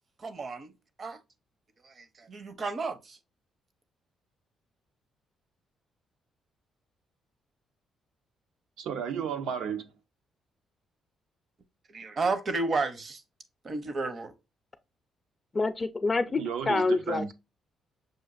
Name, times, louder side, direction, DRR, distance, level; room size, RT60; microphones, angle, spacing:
voice 1, 0.2-0.7 1.0-1.2 1.8-3.2 11.9-13.2 13.6-14.3, right 3 dB, 45° right, 0.7 m, -32 dB
voice 2, 8.8-9.9 16.3-17.3, right 7 dB, 80° right, 0.6 m, -33 dB
voice 3, 15.5-17.3, left 3 dB, 30° left, 0.4 m, -27 dB
6.3 x 2.5 x 2.4 m
cardioid pair, 90°, 0 cm